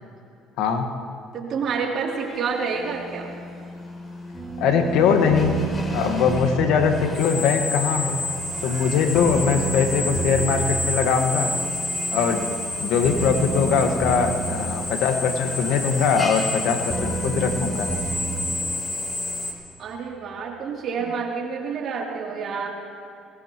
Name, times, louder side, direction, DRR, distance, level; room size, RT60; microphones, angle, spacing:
voice 1, 1.3-3.3 19.8-22.7, right 5 dB, 55° right, -1 dB, 3.1 m, -28 dB
Drill, 2.2-19.5, left 2 dB, 25° left, 3.5 m, -31 dB
sound 1, 4.3-19.8, right 4 dB, ahead, 3.8 m, -32 dB
voice 2, 4.6-5.6 5.9-8.2 8.6-11.5 12.1-17.9, left 6 dB, 75° left, 5 dB, 1.6 m, -21 dB
22.0 x 20.0 x 3.1 m, 2.5 s
supercardioid pair, 95°, 0 cm